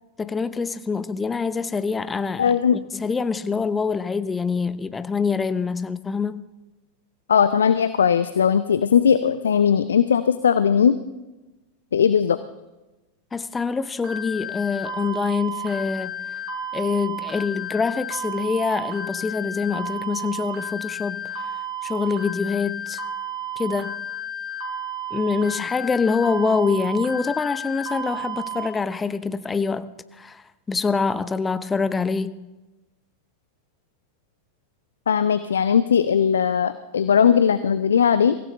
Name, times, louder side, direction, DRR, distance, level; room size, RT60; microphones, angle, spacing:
voice 1, 0.2-6.4 13.3-16.1 16.7-21.5 21.8-23.0 23.6-24.0 25.1-32.3, left 5 dB, 15° left, 14 dB, 0.7 m, -25 dB
voice 2, 2.4-2.8 7.3-11.0 11.9-12.4 35.1-38.3, left 7 dB, 65° left, 14 dB, 0.5 m, -19 dB
sound 1, 14.0-28.7, right 1 dB, 25° right, 6.0 m, -32 dB
23.5 x 15.5 x 3.3 m, 1.1 s
figure-of-eight pair, 90°, 0 cm